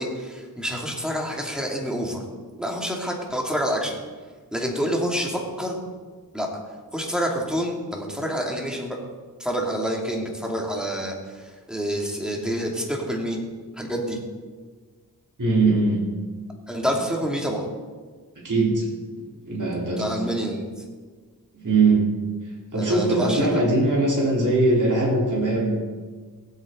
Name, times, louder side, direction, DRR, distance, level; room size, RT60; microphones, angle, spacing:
voice 1, 0.0-2.2 2.6-4.0 4.5-5.8 6.3-6.5 6.9-9.0 9.4-13.4 13.8-14.2 16.7-17.7 20.0-20.6 22.8-23.6, equal, ahead, -1 dB, 2.8 m, -27 dB
voice 2, 15.4-16.0 18.4-18.8 19.5-20.1 21.5-22.1 22.7-25.9, right 2 dB, 50° right, -5 dB, 4.0 m, -21 dB
18.0 x 8.3 x 4.0 m, 1.5 s
cardioid pair, 45°, 38 cm